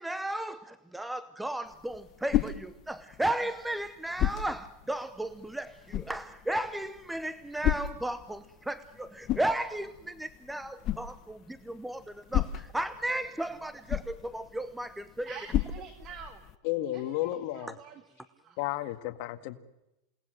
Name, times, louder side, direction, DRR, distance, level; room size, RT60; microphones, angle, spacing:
voice 1, 0.0-12.0 12.3-15.4, right 1 dB, 5° right, 0.8 m, -34 dB
sound 1, 1.6-16.6, left 12 dB, 35° left, 1.2 m, -36 dB
voice 2, 15.3-16.4 16.9-18.6, right 7 dB, 35° right, 1.8 m, -47 dB
voice 3, 16.6-17.7 18.6-19.6, left 15 dB, 55° left, 1.9 m, -32 dB
28.5 x 18.5 x 7.8 m
supercardioid pair, 150°, 0 cm